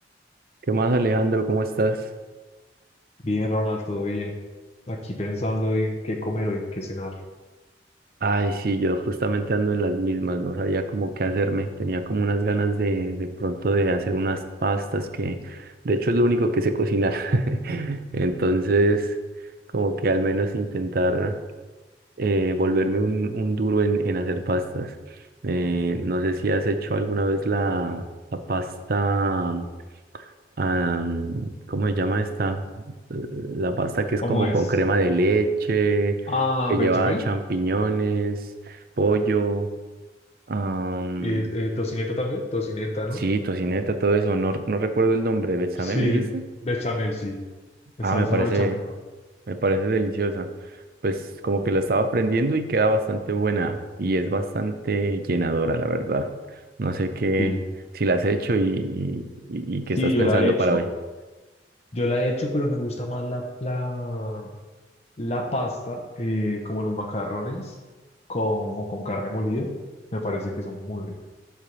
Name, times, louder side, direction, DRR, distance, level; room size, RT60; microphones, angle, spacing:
voice 1, 0.7-2.1 8.2-19.2 19.7-21.4 22.2-25.0 25.4-29.7 30.1-30.3 30.6-32.6 33.1-36.2 36.7-39.7 40.5-41.4 43.2-46.2 48.0-48.8 49.5-50.5 51.0-56.3 56.8-57.5 57.9-60.8, right 2 dB, 55° right, 8 dB, 0.5 m, -24 dB
voice 2, 3.2-4.4 4.9-7.1 34.2-34.6 36.3-37.2 41.2-43.2 45.8-46.3 46.6-47.4 48.0-48.7 57.4-57.6 60.0-60.8 61.9-64.6 65.2-67.8 68.3-69.7 70.1-71.1, left 1 dB, 35° left, 2 dB, 0.7 m, -27 dB
7.4 x 3.4 x 6.1 m, 1.2 s
head